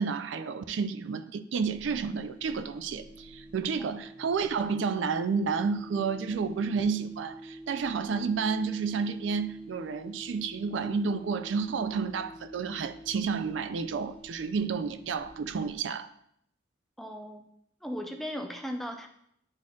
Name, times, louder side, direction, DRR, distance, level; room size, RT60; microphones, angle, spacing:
voice 1, 0.0-16.1, right 5 dB, 75° right, 0.4 m, -31 dB
sound 1, 1.6-15.7, right 1 dB, 35° right, 1.5 m, -48 dB
voice 2, 17.0-17.4 17.8-19.1, equal, ahead, 0.4 m, -37 dB
10.5 x 4.3 x 2.4 m
head